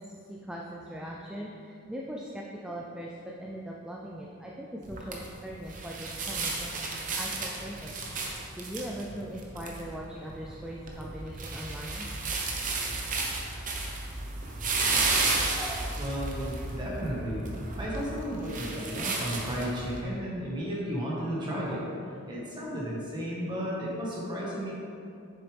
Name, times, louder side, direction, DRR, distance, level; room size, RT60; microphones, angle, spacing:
voice 1, 0.0-8.0 8.5-12.1 15.5-16.0 17.7-18.0, equal, 5° right, -2 dB, 0.3 m, -40 dB
sound 1, 4.8-20.0, right 3 dB, 35° right, 0.8 m, -33 dB
voice 2, 16.0-17.4 17.8-21.9 22.3-24.7, equal, 20° right, -5 dB, 1.5 m, -33 dB
7.1 x 6.9 x 3.4 m, 2.6 s
head